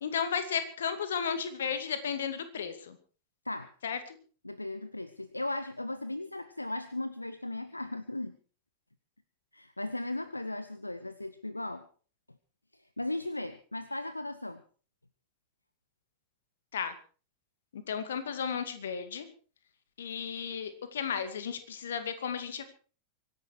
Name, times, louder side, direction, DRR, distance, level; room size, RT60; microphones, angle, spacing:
voice 1, 0.0-3.0 3.8-4.2 16.7-16.9 17.7-19.3 20.0-22.6, left 7 dB, 65° left, 11 dB, 2.3 m, -34 dB
voice 2, 4.4-8.4 9.5-11.9 12.7-14.6, left 2 dB, 85° left, 14 dB, 0.8 m, -37 dB
25.0 x 11.0 x 4.7 m, 0.39 s
figure-of-eight pair, 90°, 0 cm